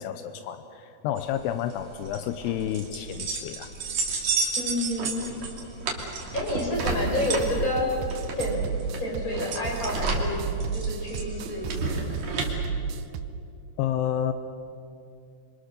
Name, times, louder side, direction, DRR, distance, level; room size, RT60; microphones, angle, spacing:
voice 1, 0.0-3.7 13.8-14.3, left 10 dB, 85° left, 9 dB, 2.4 m, -30 dB
sound 1, 1.2-12.5, right 3 dB, 40° right, 3.1 m, -31 dB
voice 2, 4.6-5.5 6.3-7.9 8.4-8.6 9.0-10.5 10.7-12.4, left 1 dB, 15° left, -2 dB, 5.6 m, -29 dB
sound 2, 6.7-13.3, right 7 dB, 85° right, 2.2 m, -33 dB
26.0 x 25.5 x 6.8 m, 2.7 s
omnidirectional pair, 5.6 m